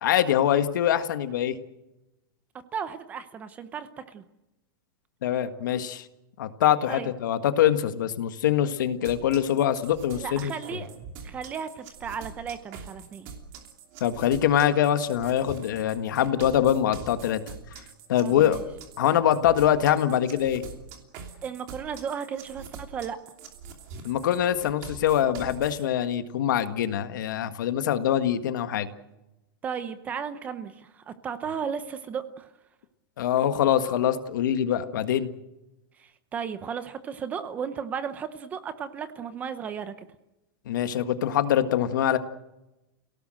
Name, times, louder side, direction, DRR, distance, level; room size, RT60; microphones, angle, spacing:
voice 1, 0.0-1.5 5.2-6.0 6.4-10.5 14.0-17.4 18.1-18.6 19.0-20.6 24.0-28.9 33.2-35.3 40.7-42.2, left 10 dB, 60° left, 10 dB, 1.7 m, -24 dB
voice 2, 2.7-4.2 6.9-7.1 10.2-10.9 11.2-13.3 18.2-18.6 21.4-23.2 29.6-32.5 36.0-40.1, right 7 dB, 15° right, 12 dB, 0.8 m, -35 dB
sound 1, 9.0-25.8, right 5 dB, 30° right, 3.0 m, -44 dB
30.0 x 18.0 x 7.7 m, 0.98 s
supercardioid pair, 175°, 12 cm